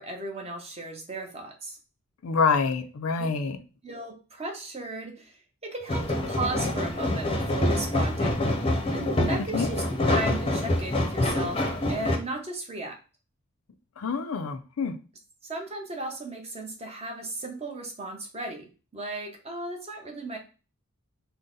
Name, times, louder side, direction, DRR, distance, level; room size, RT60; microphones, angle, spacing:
voice 1, 0.0-1.8 3.2-3.3 3.8-8.5 8.9-13.0 15.4-20.4, right 2 dB, 30° right, 2 dB, 0.9 m, -36 dB
voice 2, 2.2-3.6 9.5-9.7 14.0-14.9, left 5 dB, 75° left, 8 dB, 0.5 m, -26 dB
sound 1, 5.9-12.2, left 1 dB, 25° left, 0.7 m, -26 dB
3.9 x 2.1 x 3.8 m, 0.33 s
head